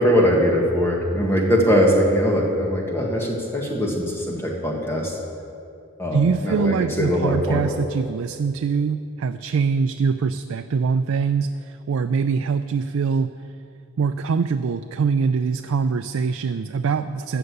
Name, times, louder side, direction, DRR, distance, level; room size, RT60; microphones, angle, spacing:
voice 1, 0.0-5.1 6.0-7.6, equal, 10° left, -1 dB, 1.7 m, -21 dB
voice 2, 6.1-13.3 14.0-17.4, right 5 dB, 85° right, 8 dB, 0.4 m, -23 dB
13.0 x 6.8 x 8.1 m, 2.6 s
head